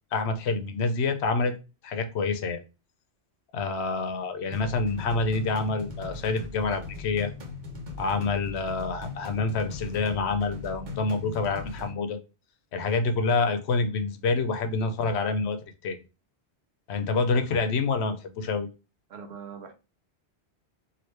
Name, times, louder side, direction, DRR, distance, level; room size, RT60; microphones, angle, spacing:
voice 1, 0.1-1.6 1.8-2.6 3.5-7.3 8.0-12.2 12.7-16.0 16.9-18.7, left 4 dB, 80° left, 0.8 m, -27 dB
sound 1, 4.5-11.9, left 3 dB, 50° right, 0.9 m, -39 dB
voice 2, 19.1-19.7, right 6 dB, 75° right, 0.9 m, -41 dB
2.9 x 2.6 x 3.1 m
omnidirectional pair, 1.1 m